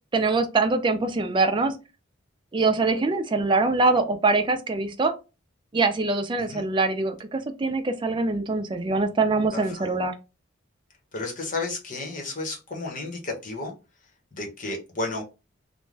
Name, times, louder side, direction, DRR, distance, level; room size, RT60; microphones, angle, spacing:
voice 1, 0.1-1.7 2.5-5.1 5.7-10.1, right 3 dB, 25° right, 0.4 m, -23 dB
voice 2, 9.5-9.9 11.1-13.7 14.3-15.2, left 3 dB, 40° left, 0.9 m, -32 dB
2.5 x 2.2 x 3.2 m
head